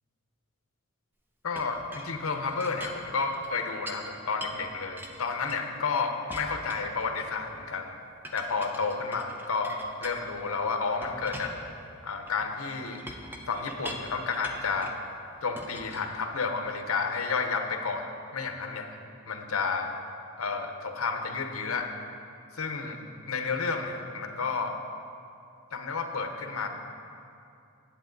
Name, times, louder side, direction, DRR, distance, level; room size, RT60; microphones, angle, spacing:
voice 1, 1.4-7.9 8.3-9.7 10.0-11.6 12.0-13.0 13.5-15.0 15.4-18.9 19.3-20.0 20.4-21.9 22.6-23.0 23.2-24.7 25.7-26.7, left 4 dB, 70° left, 5 dB, 0.8 m, -31 dB
Chink clink, 1.6-4.1 4.4-5.9 6.3-7.5 8.2-10.5 11.0-15.0 15.6-16.7, equal, 10° right, 0.6 m, -44 dB
10.0 x 8.7 x 3.9 m, 2.5 s
head